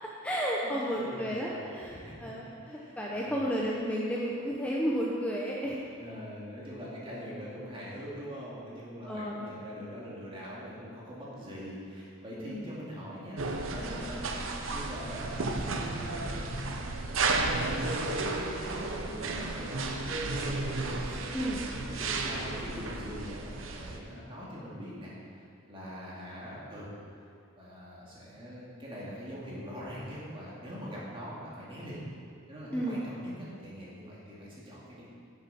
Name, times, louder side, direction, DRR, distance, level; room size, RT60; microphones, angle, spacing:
voice 1, 0.0-5.8 9.1-9.5 12.4-12.8 21.3-21.6 32.7-33.0, equal, 5° left, -4 dB, 0.7 m, -32 dB
voice 2, 0.6-3.4 5.9-16.6 16.9-17.2 17.6-25.1 25.7-26.9 27.5-32.0 32.5-35.1, equal, 25° right, -7 dB, 2.4 m, -43 dB
sound 1, 13.4-24.0, right 3 dB, 75° right, 0.8 m, -33 dB
10.0 x 7.1 x 4.3 m, 2.5 s
head